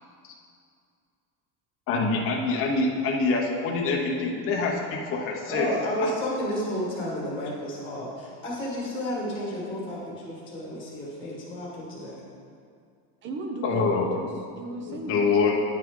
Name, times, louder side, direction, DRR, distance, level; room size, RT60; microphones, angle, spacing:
voice 1, 1.9-5.7 6.0-6.1 13.6-14.1 14.9-15.5, left 4 dB, 30° left, -1 dB, 0.7 m, -25 dB
voice 2, 5.5-12.1, left 1 dB, 10° left, -5 dB, 1.3 m, -31 dB
voice 3, 13.2-13.8 14.1-15.5, right 2 dB, 25° right, 3 dB, 0.6 m, -36 dB
9.9 x 6.0 x 3.7 m, 2.3 s
cardioid pair, 175°, 45 cm